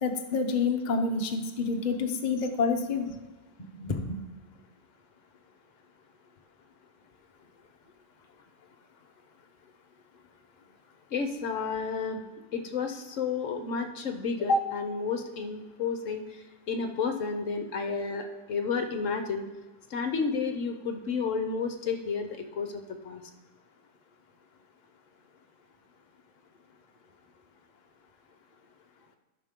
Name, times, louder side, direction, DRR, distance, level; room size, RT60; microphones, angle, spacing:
voice 1, 0.0-3.1 3.6-4.2, left 4 dB, 40° left, 3 dB, 0.7 m, -28 dB
voice 2, 11.1-12.2 12.5-16.4 16.7-19.4 19.9-23.2, left 4 dB, 55° left, 6 dB, 1.1 m, -31 dB
13.0 x 6.0 x 3.7 m, 1.2 s
omnidirectional pair, 1.7 m